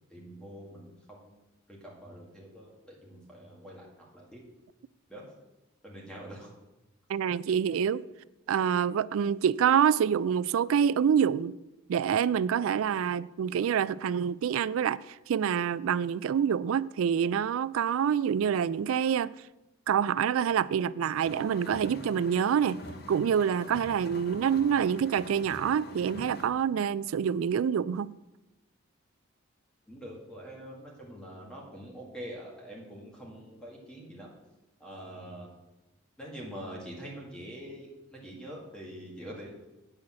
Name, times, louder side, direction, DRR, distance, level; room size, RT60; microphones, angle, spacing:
voice 1, 0.1-1.3 1.7-4.4 5.1-5.2 5.8-6.5 29.9-34.3 34.8-35.5 36.2-39.6, equal, 5° left, 2.0 m, -45 dB
voice 2, 7.1-8.0 8.5-11.5 11.9-19.3 19.9-22.8 23.1-28.1, right 8 dB, 80° right, 0.3 m, -26 dB
sound 1, 21.2-26.5, left 1 dB, 50° left, 0.9 m, -45 dB
8.6 x 6.3 x 7.5 m
head